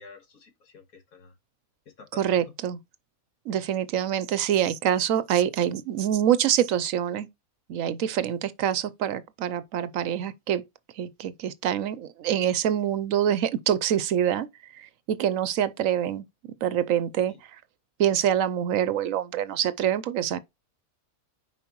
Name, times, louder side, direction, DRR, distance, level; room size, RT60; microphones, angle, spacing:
voice 1, 0.0-1.4 1.9-2.5 17.3-17.4, left 4 dB, 75° left, 1.9 m, -49 dB
voice 2, 2.2-2.8 3.5-7.3 7.7-10.6 10.9-17.6 18.0-20.4, right 10 dB, 70° right, 0.9 m, -26 dB
7.0 x 5.0 x 3.0 m
omnidirectional pair, 1.5 m